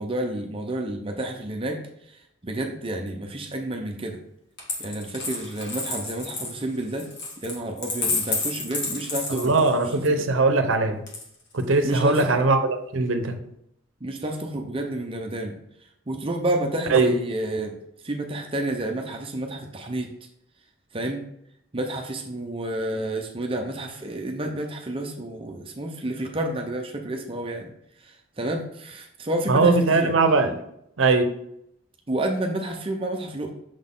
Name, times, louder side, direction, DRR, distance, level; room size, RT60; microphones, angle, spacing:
voice 1, 0.0-1.8 2.1-4.2 4.8-7.1 7.4-9.6 10.1-10.3 11.8-12.3 14.0-15.6 16.1-17.8 18.0-20.1 20.9-21.2 21.7-27.7 28.0-30.1 32.1-33.5, right 1 dB, 30° right, 3 dB, 0.6 m, -30 dB
Coin (dropping), 4.6-10.0 11.1-11.8, left 3 dB, 60° left, 1.4 m, -30 dB
voice 2, 9.3-11.0 11.5-13.4 16.9-17.1 29.5-30.6 31.0-31.4, right 3 dB, 85° right, 7 dB, 0.7 m, -20 dB
6.3 x 4.0 x 3.7 m, 0.76 s
head